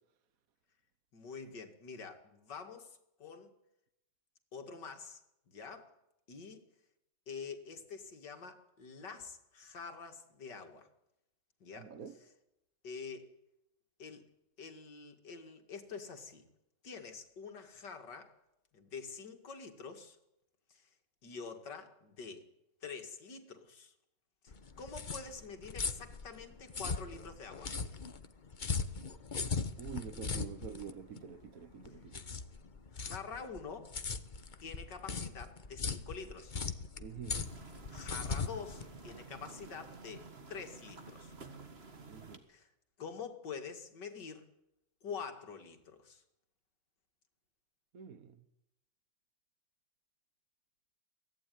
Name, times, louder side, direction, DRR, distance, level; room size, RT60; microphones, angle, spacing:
voice 1, 1.1-3.5 4.5-5.2 5.5-5.9 6.3-6.7 7.3-10.9 11.6-11.9 12.2-12.3 12.8-13.3 14.0-14.2 14.6-16.5 16.8-18.3 18.7-20.2 20.7-20.9 21.2-22.4 22.8-23.9 24.4-27.8 31.8-31.9 32.9-33.9 34.6-36.5 37.9-41.3 42.5-42.7 43.0-44.4 45.0-46.2, left 5 dB, 55° left, 2.8 m, -46 dB
voice 2, 11.8-12.1 29.8-32.4 37.0-37.4 42.1-42.4 47.9-48.3, right 7 dB, 50° right, 1.4 m, -47 dB
sound 1, 24.5-39.7, left 5 dB, 35° left, 0.8 m, -39 dB
sound 2, 37.3-42.4, right 4 dB, 30° right, 1.8 m, -51 dB
23.5 x 16.5 x 9.5 m
omnidirectional pair, 2.3 m